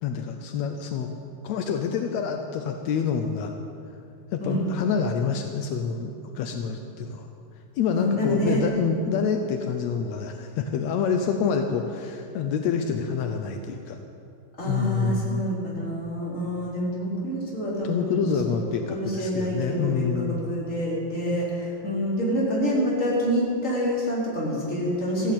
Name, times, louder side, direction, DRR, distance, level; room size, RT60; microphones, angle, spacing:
voice 1, 0.0-1.1 1.4-3.5 4.3-7.3 7.8-14.0 14.6-15.4 17.8-20.4, left 6 dB, 80° left, 5 dB, 1.6 m, -27 dB
voice 2, 7.9-8.6 14.6-25.3, equal, 20° left, -5 dB, 4.1 m, -27 dB
14.5 x 10.5 x 8.6 m, 2.6 s
omnidirectional pair, 4.1 m